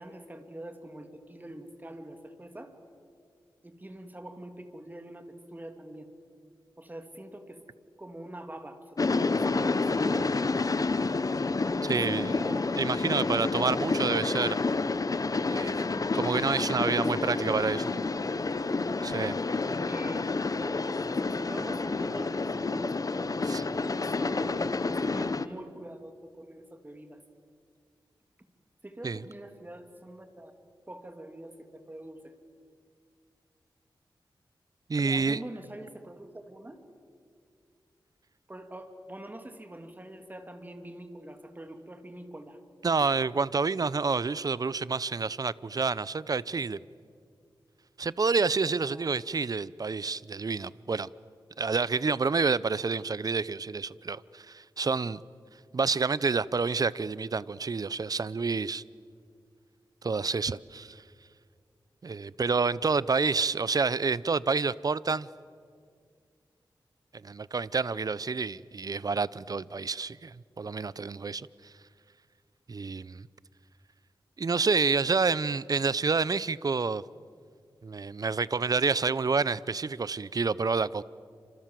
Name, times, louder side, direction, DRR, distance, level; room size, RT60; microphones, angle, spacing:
voice 1, 0.0-2.7 3.6-6.1 6.8-7.6 8.0-10.5 11.7-12.7 16.5-17.9 19.7-20.5 21.1-23.3 23.9-27.2 28.8-30.5 30.9-32.3 35.0-36.8 38.5-42.6 48.8-49.1, right 1 dB, 20° right, 3.1 m, -44 dB
sound 1, 9.0-25.5, left 3 dB, 45° left, 1.0 m, -29 dB
voice 2, 11.8-12.3 12.8-14.6 15.5-15.7 16.1-17.8 19.0-19.4 23.5-23.6 29.0-29.2 34.9-35.4 42.8-46.8 48.0-51.1 51.6-55.2 55.7-58.8 60.0-61.0 62.0-65.3 67.2-71.5 72.7-73.3 74.4-77.0 77.8-81.0, right 4 dB, 50° right, 0.7 m, -28 dB
29.0 x 26.5 x 7.7 m
wide cardioid pair, 75°, 8 cm